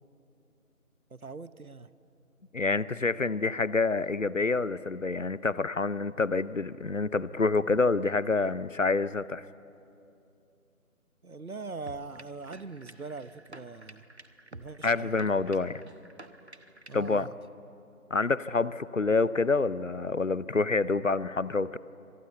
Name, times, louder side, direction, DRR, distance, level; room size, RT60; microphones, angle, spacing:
voice 1, 1.1-1.9 11.2-14.0 14.5-15.2 16.9-17.4, right 4 dB, 70° right, 14 dB, 1.1 m, -42 dB
voice 2, 2.5-9.4 14.8-15.8 16.9-17.3 18.1-21.8, left 3 dB, 60° left, 18 dB, 0.6 m, -27 dB
sound 1, 11.9-17.2, right 2 dB, 45° right, 1.0 m, -50 dB
25.0 x 19.0 x 8.3 m, 2.7 s
figure-of-eight pair, 170°, 44 cm